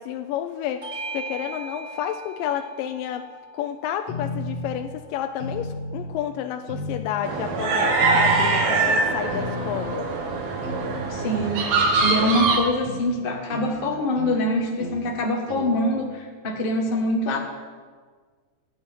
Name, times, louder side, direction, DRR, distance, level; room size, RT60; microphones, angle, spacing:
voice 1, 0.0-3.2 3.5-10.0, left 10 dB, 80° left, 6 dB, 2.2 m, -30 dB
Bell / Doorbell, 0.8-5.6, right 2 dB, 35° right, 2.1 m, -39 dB
sound 1, 4.1-4.8 5.4-6.1 6.7-7.4 8.0-8.7 9.3-10.0 10.6-11.3 12.8-13.1 13.5-13.7 14.2-14.4 14.8-15.0 15.5-15.7, left 1 dB, 55° right, 5.4 m, -33 dB
sound 2, 7.2-12.6, right 3 dB, 75° right, 3.5 m, -23 dB
voice 2, 11.1-17.4, left 1 dB, 35° left, 1 dB, 0.8 m, -24 dB
27.0 x 9.6 x 4.6 m, 1.5 s
omnidirectional pair, 4.2 m